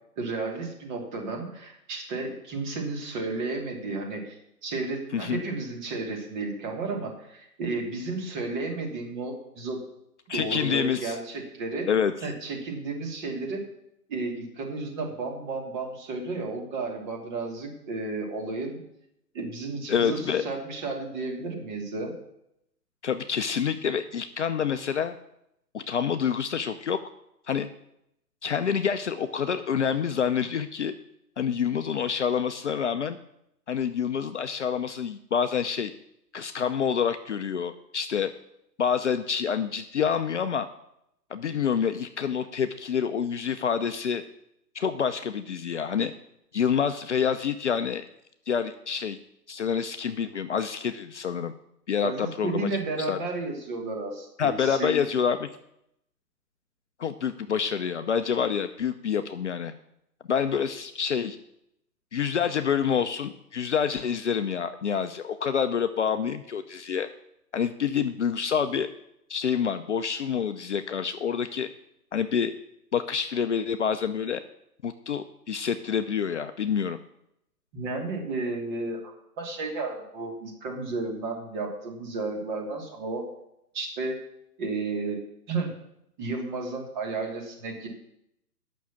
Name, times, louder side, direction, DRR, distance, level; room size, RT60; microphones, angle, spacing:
voice 1, 0.2-4.3 4.6-9.8 10.3-11.9 12.2-13.6 14.1-18.8 19.3-22.1 52.0-55.0 77.7-79.1 79.4-83.2 83.7-84.2 84.6-85.2 85.5-85.7 86.2-87.9, right 3 dB, 30° right, 1 dB, 2.6 m, -32 dB
voice 2, 10.3-11.2 11.9-12.1 19.9-20.5 23.0-25.1 25.7-27.0 27.5-27.7 28.4-30.9 31.4-33.2 33.7-35.9 36.3-38.3 38.8-40.7 41.3-44.2 44.7-46.1 46.5-48.0 48.5-49.2 49.5-51.5 51.9-52.7 53.0-53.2 54.4-55.5 57.0-59.7 60.3-61.4 62.1-67.1 67.5-68.9 69.3-71.7 72.1-72.5 72.9-74.4 74.8-77.0, left 7 dB, 45° left, 9 dB, 0.6 m, -27 dB
9.2 x 6.3 x 7.2 m, 0.79 s
hypercardioid pair, 145°, 49 cm